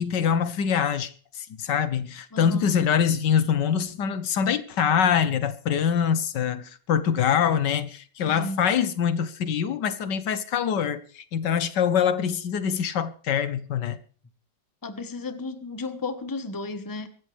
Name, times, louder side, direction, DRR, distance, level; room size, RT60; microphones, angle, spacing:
voice 1, 0.0-14.0, left 8 dB, 75° left, 1.6 m, -24 dB
voice 2, 2.3-2.7 8.2-8.6 14.8-17.1, left 3 dB, 15° left, 1.1 m, -33 dB
23.5 x 14.0 x 3.4 m
omnidirectional pair, 2.0 m